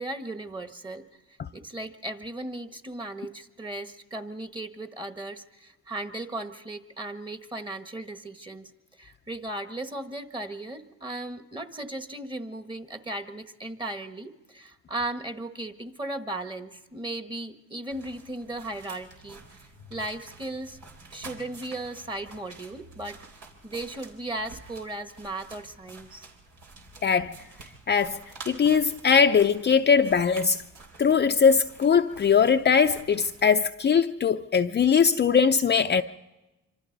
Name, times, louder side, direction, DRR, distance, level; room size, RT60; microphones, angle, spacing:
voice 1, 0.0-8.7 9.0-19.6 19.9-20.8 21.1-23.2 23.6-26.3, right 2 dB, 15° right, 1.4 m, -36 dB
sound 1, 17.9-33.5, right 3 dB, 75° right, 3.8 m, -49 dB
voice 2, 27.0-27.3 27.9-28.2 28.5-30.6 31.0-36.0, left 6 dB, 35° left, 0.6 m, -21 dB
26.0 x 25.0 x 4.0 m
cardioid pair, 90°, 30 cm